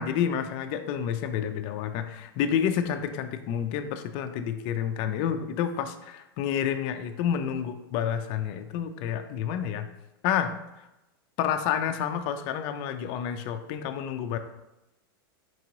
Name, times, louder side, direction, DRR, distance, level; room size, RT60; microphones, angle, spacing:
voice 1, 0.0-9.9 10.2-10.6 11.4-14.4, left 8 dB, 45° left, 8 dB, 0.4 m, -29 dB
4.6 x 2.9 x 3.8 m, 0.93 s
hypercardioid pair, 130°, 12 cm